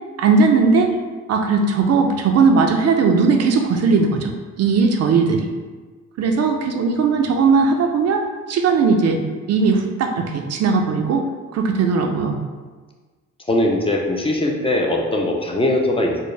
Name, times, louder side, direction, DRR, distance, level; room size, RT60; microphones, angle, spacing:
voice 1, 0.2-0.9 1.3-4.3 4.6-5.5 6.2-9.2 9.5-11.3 11.5-12.4, right 4 dB, 55° right, 4 dB, 0.5 m, -18 dB
voice 2, 13.5-16.2, left 1 dB, 20° left, 0 dB, 0.4 m, -20 dB
4.4 x 2.0 x 3.2 m, 1.4 s
cardioid pair, 90°, 30 cm